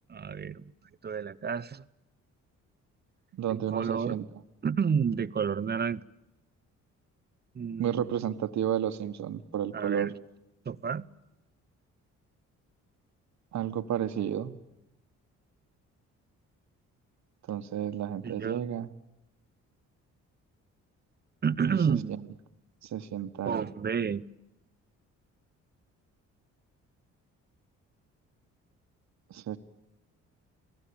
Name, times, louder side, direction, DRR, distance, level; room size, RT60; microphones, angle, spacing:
voice 1, 0.1-0.6 1.0-1.8 3.5-4.1 4.6-6.0 7.6-8.1 9.7-10.1 10.7-11.1 18.2-18.6 21.4-22.2 23.5-24.2, right 6 dB, 35° right, 0.8 m, -30 dB
voice 2, 3.3-4.3 7.8-10.1 13.5-14.6 17.5-18.9 21.6-21.8 22.2-22.3 22.8-23.7 29.3-29.6, right 10 dB, 65° right, 1.5 m, -32 dB
27.5 x 18.5 x 8.8 m
cardioid pair, 90°, 30 cm